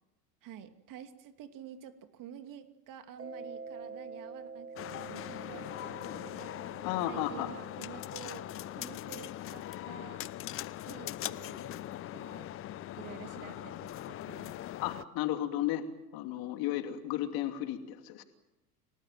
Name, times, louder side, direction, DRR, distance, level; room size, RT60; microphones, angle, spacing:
voice 1, 0.4-6.8 7.1-10.2 10.8-11.9 12.1-12.5 13.0-14.7, right 10 dB, 40° right, 8 dB, 2.7 m, -50 dB
Mallet percussion, 3.2-9.6, right 4 dB, 85° right, 3.1 m, -48 dB
sound 1, 4.8-15.0, left 13 dB, 30° left, 0.8 m, -41 dB
voice 2, 6.8-7.5 14.8-15.8 16.1-18.2, left 13 dB, 45° left, 7 dB, 2.9 m, -33 dB
29.5 x 18.5 x 7.6 m, 0.95 s
figure-of-eight pair, 80°, 48 cm